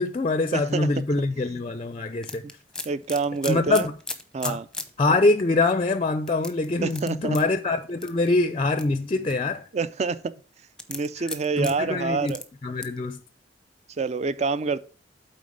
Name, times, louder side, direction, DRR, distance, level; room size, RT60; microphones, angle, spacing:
voice 1, 0.0-2.4 3.5-3.9 4.4-4.6 5.0-9.7 11.6-12.3 12.6-13.2, left 2 dB, 30° left, 0.4 m, -24 dB
voice 2, 0.5-0.9 2.4-2.5 2.9-3.9 4.3-4.7 6.8-7.4 9.7-10.3 10.9-12.4 14.0-14.8, right 4 dB, 40° right, 0.4 m, -27 dB
sound 1, 2.2-4.9 5.4-5.5 6.3-7.4 8.0-8.3 8.8-9.5 10.8-11.7 12.3-12.4 12.8-13.0, left 2 dB, 5° left, 0.7 m, -35 dB
8.4 x 4.3 x 5.1 m
head